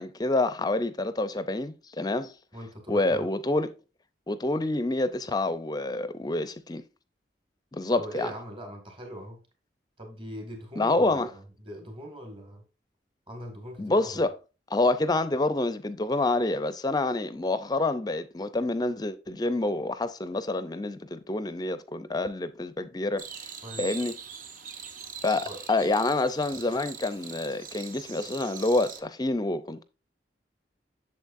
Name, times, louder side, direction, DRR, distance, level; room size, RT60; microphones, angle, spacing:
voice 1, 0.0-2.3 2.9-3.7 4.3-6.8 7.7-8.3 10.8-11.3 13.8-14.3 14.7-23.2 23.8-24.1 25.2-29.8, left 2 dB, 20° left, 0.5 m, -27 dB
voice 2, 2.5-3.2 8.0-9.4 10.0-12.6 13.3-14.3 23.6-23.9 25.5-25.6, equal, 30° right, 1.9 m, -41 dB
sound 1, 23.2-29.0, right 7 dB, 50° right, 0.8 m, -42 dB
8.2 x 6.9 x 2.5 m
head